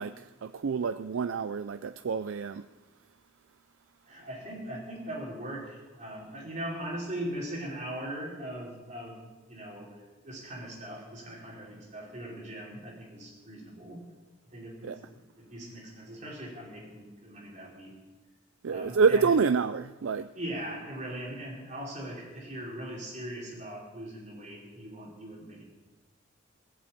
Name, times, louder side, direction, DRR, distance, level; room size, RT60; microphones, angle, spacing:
voice 1, 0.0-2.7 14.8-15.0 18.6-20.3, right 5 dB, 85° right, 0.4 m, -27 dB
voice 2, 4.1-9.2 9.5-14.1 14.4-17.9 18.7-19.3 20.3-25.6, right 1 dB, 35° right, 4.7 m, -40 dB
18.0 x 7.7 x 8.6 m
head